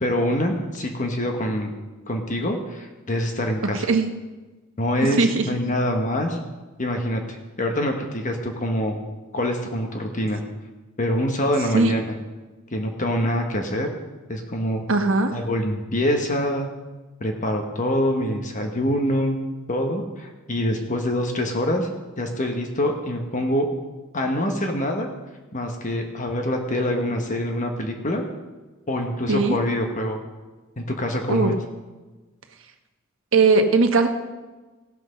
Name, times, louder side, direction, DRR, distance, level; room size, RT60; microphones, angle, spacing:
voice 1, 0.0-1.7 2.1-3.9 4.8-6.4 6.8-9.0 9.3-10.4 11.0-12.2 12.7-13.9 14.3-14.8 15.3-16.7 17.2-19.4 19.7-21.9 22.2-23.7 24.1-25.1 25.5-28.2 28.9-30.2 30.8-31.5, equal, 40° left, 3 dB, 1.2 m, -25 dB
voice 2, 3.7-4.1 5.2-5.4 11.7-11.9 14.9-15.4 29.3-29.6 31.3-31.5 33.3-34.1, right 3 dB, 65° right, 6 dB, 1.2 m, -19 dB
17.0 x 6.0 x 6.5 m, 1.2 s
head